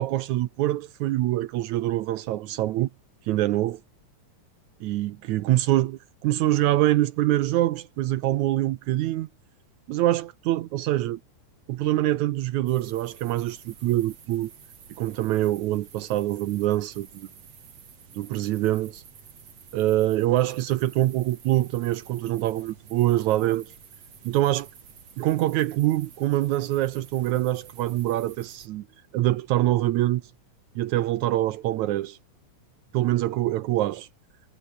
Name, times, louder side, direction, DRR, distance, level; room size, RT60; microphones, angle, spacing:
voice 1, 0.0-2.9 3.3-3.8 4.8-9.3 9.9-11.2 11.7-14.5 15.0-17.3 18.1-19.0 19.7-23.7 24.2-24.7 25.2-28.9 29.1-30.2 30.8-32.2 32.9-34.1, right 15 dB, 75° right, 2.0 m, -25 dB
sound 1, 12.7-28.7, right 7 dB, 50° right, 3.7 m, -50 dB
omnidirectional pair, 3.7 m